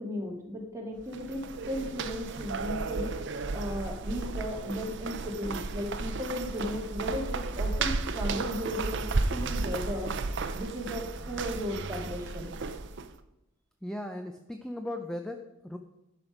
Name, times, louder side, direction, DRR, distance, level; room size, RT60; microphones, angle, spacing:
voice 1, 0.0-3.1 3.5-10.1 10.5-12.5, left 1 dB, 15° right, -1 dB, 2.0 m, -35 dB
sound 1, 1.0-13.1, right 3 dB, 60° right, 0.6 m, -34 dB
voice 2, 13.8-15.8, left 1 dB, 5° left, 5 dB, 0.5 m, -37 dB
11.0 x 5.1 x 6.0 m, 0.89 s
head